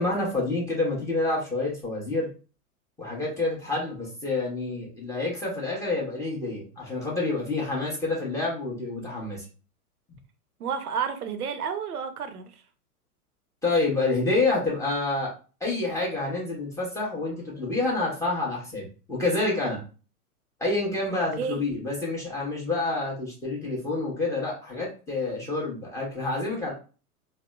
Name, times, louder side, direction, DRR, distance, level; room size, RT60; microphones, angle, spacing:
voice 1, 0.0-2.3 3.0-9.4 13.6-15.3 15.6-19.8 20.6-26.7, left 2 dB, 5° left, -3 dB, 0.9 m, -28 dB
voice 2, 10.6-12.5 21.4-21.6, right 7 dB, 80° right, 8 dB, 0.6 m, -30 dB
2.9 x 2.0 x 2.2 m, 0.35 s
hypercardioid pair, 110°, 45 cm